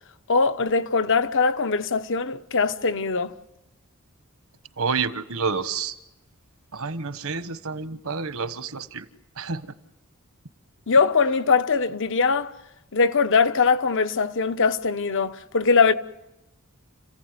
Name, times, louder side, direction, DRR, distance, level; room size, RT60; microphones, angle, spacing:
voice 1, 0.3-3.3 10.9-12.5 12.9-15.9, left 4 dB, 60° left, 1.0 m, -21 dB
voice 2, 4.8-5.9 6.7-9.0 9.4-9.6, right 5 dB, 70° right, 1.3 m, -29 dB
30.0 x 15.5 x 9.5 m
head